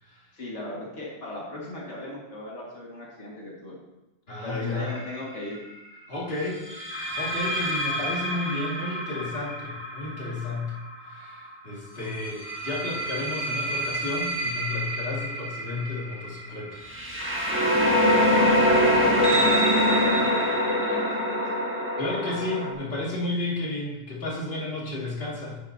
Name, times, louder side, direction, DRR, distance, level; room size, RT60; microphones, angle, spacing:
voice 1, 0.3-3.8 4.4-5.6 17.7-18.3 18.6-20.3 20.8-21.4, left 1 dB, 85° left, -4 dB, 2.0 m, -37 dB
voice 2, 4.3-4.9 6.1-6.7 7.1-10.7 11.0-16.8 22.0-25.6, left 2 dB, 55° left, -4 dB, 2.2 m, -32 dB
sound 1, 4.9-5.2 6.7-11.4 12.2-22.7, equal, 10° right, 1.4 m, -25 dB
10.0 x 10.0 x 2.6 m, 1.0 s
omnidirectional pair, 1.2 m